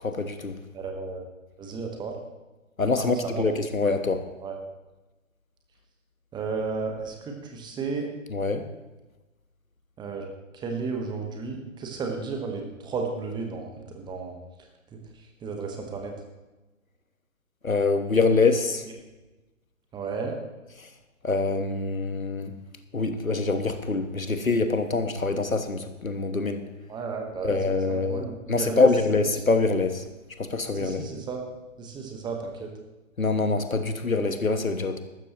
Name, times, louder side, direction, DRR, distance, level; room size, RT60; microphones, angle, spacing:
voice 1, 0.0-0.5 2.8-4.2 8.3-8.6 17.6-18.8 21.2-22.5 22.9-26.6 27.4-28.2 28.5-30.0 30.4-31.0 33.2-35.0, left 3 dB, 90° left, 8 dB, 1.4 m, -25 dB
voice 2, 0.7-1.3 1.6-2.2 3.0-3.5 4.4-4.6 6.3-8.1 10.0-10.3 10.5-13.7 13.9-14.4 14.9-15.0 15.4-16.1 19.9-20.3 26.9-27.6 27.9-28.9 30.7-31.4 31.8-32.7, right 4 dB, 10° right, 2 dB, 1.2 m, -33 dB
15.0 x 13.0 x 3.0 m, 1.1 s
figure-of-eight pair, 130°, 40 cm